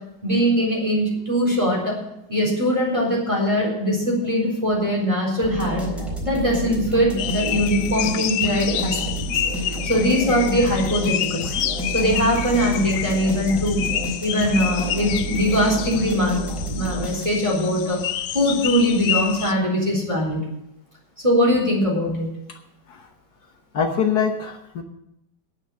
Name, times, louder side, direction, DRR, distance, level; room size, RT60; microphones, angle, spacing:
voice 1, 0.2-2.0 2.3-5.9 6.2-9.0 9.3-9.4 9.8-11.5 11.9-13.9 14.2-16.4 16.7-18.0 18.3-20.4 21.2-22.3, equal, 15° right, -3 dB, 4.1 m, -21 dB
sound 1, 5.4-17.6, right 1 dB, ahead, 3.9 m, -30 dB
sound 2, 7.2-19.5, left 11 dB, 80° left, 1.3 m, -29 dB
voice 2, 23.7-24.8, left 6 dB, 65° left, 4 dB, 1.6 m, -23 dB
9.7 x 8.8 x 8.4 m, 0.82 s
omnidirectional pair, 1.9 m